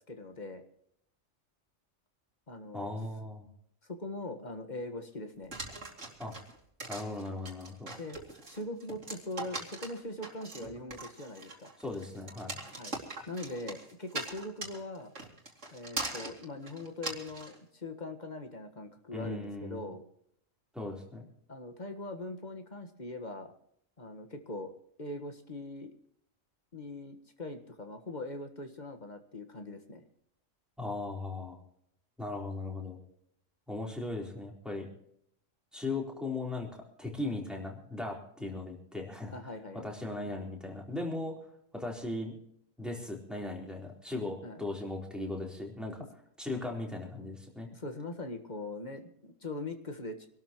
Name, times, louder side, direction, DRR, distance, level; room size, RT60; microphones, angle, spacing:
voice 1, 0.1-0.6 2.5-3.0 3.8-5.5 8.0-8.2 8.5-11.7 12.8-13.0 13.3-15.1 15.7-20.0 21.5-23.5 24.0-24.7 25.0-25.9 26.7-30.0 39.3-39.8 44.4-44.6 47.7-50.3, left 2 dB, 35° left, 6 dB, 1.6 m, -41 dB
voice 2, 2.7-3.5 6.2-6.3 6.9-7.9 11.8-12.6 19.1-19.9 20.7-21.3 30.8-31.6 32.2-33.0 33.7-34.9 35.7-36.7 37.0-39.3 39.7-41.4 41.7-42.4 42.8-46.0 46.4-47.7, left 2 dB, ahead, -1 dB, 3.9 m, -38 dB
sound 1, 5.5-17.6, right 2 dB, 60° right, 3.0 m, -41 dB
26.0 x 12.5 x 3.1 m, 0.70 s
omnidirectional pair, 1.4 m